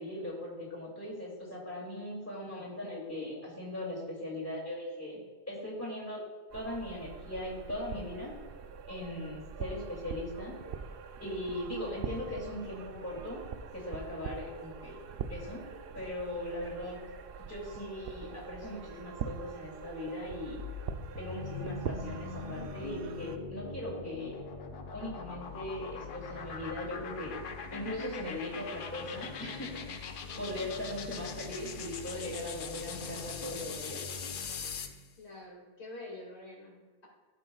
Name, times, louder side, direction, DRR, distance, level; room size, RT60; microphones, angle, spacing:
voice 1, 0.0-6.2 6.5-8.3 8.9-10.5 11.2-13.4 13.7-15.0 15.3-15.6 15.9-17.1 17.5-20.6 21.2-24.4 24.9-27.4 27.7-30.0 30.4-34.0, left 1 dB, 15° left, -4 dB, 2.3 m, -39 dB
sound 1, 6.5-23.4, right 6 dB, 65° right, 0.7 m, -43 dB
sound 2, 20.2-35.0, left 5 dB, 55° left, 0.8 m, -41 dB
voice 2, 30.5-31.0 35.2-37.1, left 2 dB, 80° left, -3 dB, 2.4 m, -47 dB
13.0 x 6.8 x 2.3 m, 1.3 s
omnidirectional pair, 1.1 m